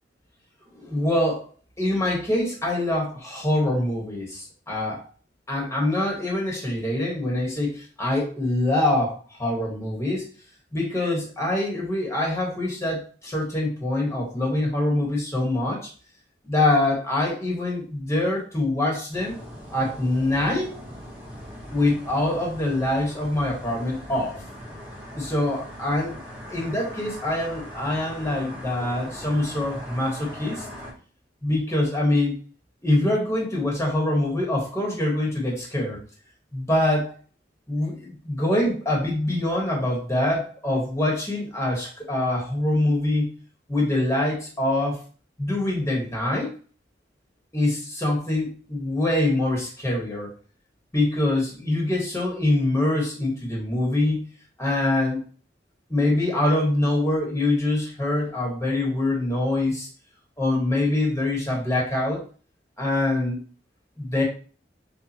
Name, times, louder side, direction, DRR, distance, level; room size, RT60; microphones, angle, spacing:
voice 1, 0.7-1.5 1.8-5.0 5.5-10.2 10.7-15.9 16.4-19.4 19.7-20.7 21.7-24.4 25.1-26.2 26.5-30.7 31.4-32.4 32.8-36.0 36.5-37.1 37.7-43.3 43.7-45.0 45.4-46.5 47.5-50.3 50.9-54.3 54.6-55.2 55.9-59.9 60.4-62.2 62.8-63.4 64.0-64.2, left 1 dB, 15° left, -2 dB, 1.5 m, -24 dB
sound 1, 19.1-30.9, equal, 10° right, 1.6 m, -40 dB
6.6 x 2.6 x 2.9 m, 0.39 s
head